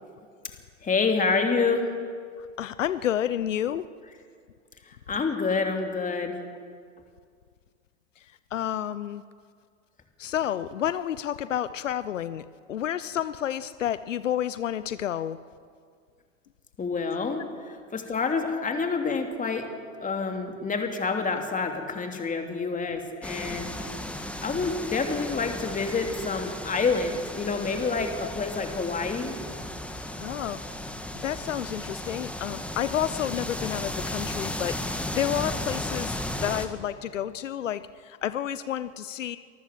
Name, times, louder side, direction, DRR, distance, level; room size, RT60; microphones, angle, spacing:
voice 1, 0.8-1.8 4.9-6.4 16.8-19.7 20.0-23.7 24.4-29.3, left 4 dB, 20° left, 4 dB, 3.0 m, -28 dB
voice 2, 2.6-3.9 8.5-9.2 10.2-15.4 30.2-30.6 31.2-39.4, left 10 dB, 90° left, 15 dB, 0.7 m, -30 dB
sound 1, 23.2-36.7, left 1 dB, 5° left, 1.9 m, -35 dB
24.5 x 14.0 x 7.7 m, 2.1 s
hypercardioid pair, 95°, 37 cm